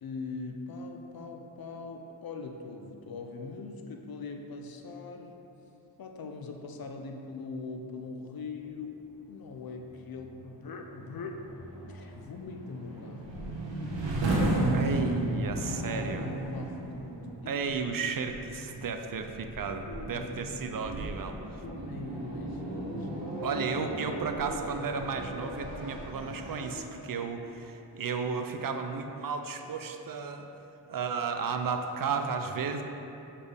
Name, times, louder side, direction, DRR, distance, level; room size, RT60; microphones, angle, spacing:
voice 1, 0.0-5.4 6.0-11.5 11.9-13.7 15.5-17.2 17.4-17.7 19.9-20.9 21.6-23.1 24.5-24.9, left 4 dB, 55° left, 4 dB, 0.7 m, -42 dB
sound 1, 9.7-26.7, right 1 dB, 90° right, 1.1 m, -35 dB
voice 2, 14.7-16.3 17.5-21.6 23.4-30.5 30.9-32.8, right 5 dB, 50° right, 6 dB, 0.5 m, -33 dB
6.9 x 4.2 x 3.4 m, 2.9 s
cardioid pair, 45°, 43 cm